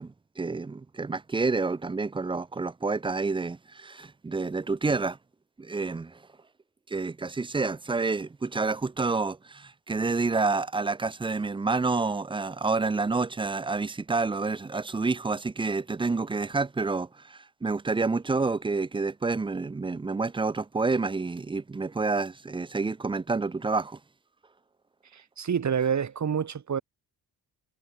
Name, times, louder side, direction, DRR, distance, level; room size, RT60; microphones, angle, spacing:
voice 1, 0.0-5.2 5.6-6.2 6.9-24.0, right 3 dB, 15° right, 0.5 m, -29 dB
voice 2, 25.1-26.8, right 7 dB, 45° right, 4.5 m, -28 dB
cardioid pair, 100°, 39 cm